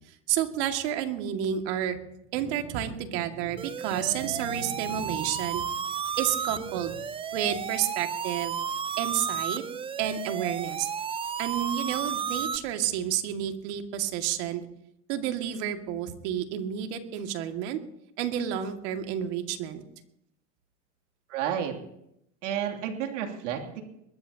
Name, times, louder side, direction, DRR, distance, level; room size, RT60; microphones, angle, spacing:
voice 1, 0.3-2.0 2.3-5.6 6.2-7.0 7.3-8.6 9.0-9.6 10.0-10.9 11.4-14.6 15.1-17.8 18.2-19.8, right 10 dB, 65° right, 5 dB, 2.2 m, -30 dB
sound 1, 3.6-12.6, right 7 dB, 15° right, 0.5 m, -33 dB
voice 2, 21.3-21.8 22.4-23.8, right 9 dB, 90° right, 2 dB, 2.9 m, -31 dB
22.5 x 20.5 x 2.9 m, 0.78 s
supercardioid pair, 120°, 36 cm